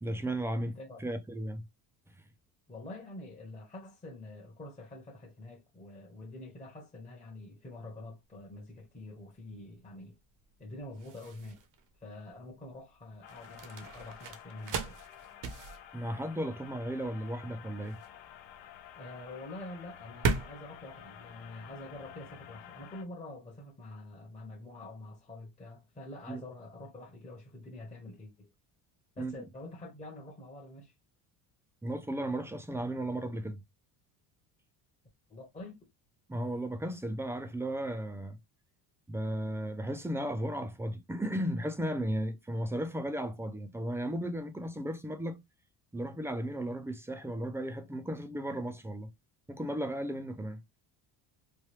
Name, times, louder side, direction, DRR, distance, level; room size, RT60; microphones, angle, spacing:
voice 1, 0.0-0.7 1.0-1.6 2.1-2.2 15.9-18.0 26.3-26.4 29.2-29.3 31.8-33.6 36.3-38.4 39.1-45.4 45.9-49.1 49.5-50.6, right 1 dB, 5° right, 0.3 m, -35 dB
voice 2, 0.6-1.0 2.7-10.2 10.6-11.6 12.0-15.0 18.9-28.5 29.2-30.9 35.3-35.8, left 2 dB, 15° left, 0.8 m, -46 dB
sound 1, 8.2-22.1, right 5 dB, 45° right, 0.7 m, -40 dB
sound 2, 13.2-23.0, left 10 dB, 85° left, 0.8 m, -51 dB
3.2 x 2.2 x 3.1 m
cardioid pair, 110°, 45 cm